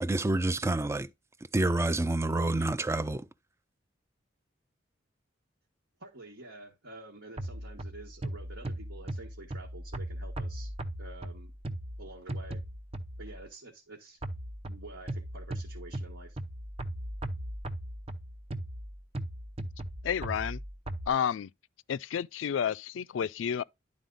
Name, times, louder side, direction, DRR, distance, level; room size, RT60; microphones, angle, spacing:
voice 1, 0.0-1.1 1.5-3.3, right 2 dB, 15° right, 0.4 m, -28 dB
voice 2, 6.0-10.7 11.0-11.5 12.0-12.6 13.2-14.2 14.6-16.4, right 2 dB, 75° right, 1.5 m, -48 dB
sound 1, 7.4-13.4 14.2-21.1, right 1 dB, 30° right, 0.7 m, -38 dB
voice 3, 20.0-20.6 21.1-21.5 21.9-23.6, left 8 dB, 85° left, 0.3 m, -30 dB
11.0 x 4.0 x 3.9 m
head